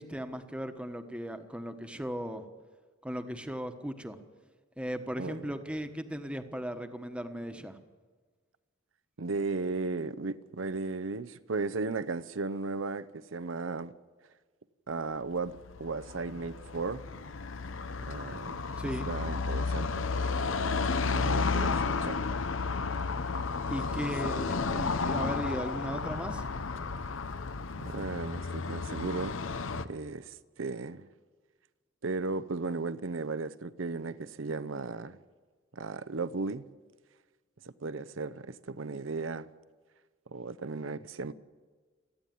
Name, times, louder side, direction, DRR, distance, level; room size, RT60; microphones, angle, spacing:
voice 1, 0.0-2.5 3.0-4.2 4.8-7.8 18.8-19.1 23.7-26.4, equal, 5° right, 1.2 m, -37 dB
voice 2, 5.2-5.5 9.2-13.9 14.9-17.0 18.0-18.5 19.1-20.5 21.1-22.2 27.8-29.4 29.8-31.1 32.0-35.2 35.7-36.6 37.6-39.5 40.3-41.3, right 3 dB, 85° right, 0.8 m, -35 dB
Car passing by / Traffic noise roadway noise, 15.2-29.9, left 4 dB, 90° left, 0.9 m, -32 dB
28.0 x 10.0 x 9.3 m
head